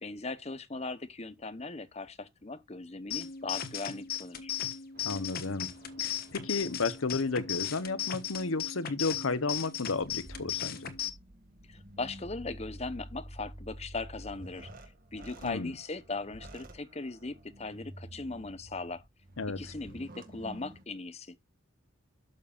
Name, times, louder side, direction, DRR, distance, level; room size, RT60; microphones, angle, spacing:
voice 1, 0.0-4.5 11.7-14.7 15.1-19.0 19.6-21.4, left 3 dB, 30° left, 0.9 m, -39 dB
sound 1, 3.1-11.1, left 10 dB, 50° left, 1.3 m, -37 dB
sound 2, 4.9-8.7 9.3-20.8, right 1 dB, 45° right, 1.9 m, -50 dB
voice 2, 5.0-5.7 6.0-10.9 15.4-15.7 19.4-19.6, left 3 dB, 85° left, 0.9 m, -32 dB
12.0 x 7.0 x 2.5 m
head